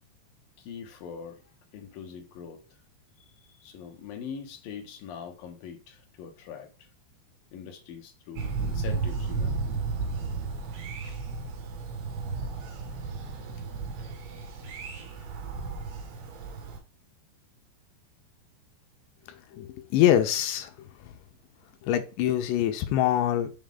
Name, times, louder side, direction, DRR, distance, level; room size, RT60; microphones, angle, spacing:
voice 1, 0.6-1.4 1.7-2.8 3.4-6.9 7.5-9.6 10.9-11.2, left 7 dB, 65° left, 2.7 m, -42 dB
Thunder, 8.4-16.8, right 4 dB, 70° right, 3.4 m, -33 dB
voice 2, 19.3-21.1 21.8-23.5, left 11 dB, 85° left, 3.1 m, -25 dB
7.7 x 5.0 x 3.7 m
omnidirectional pair, 5.0 m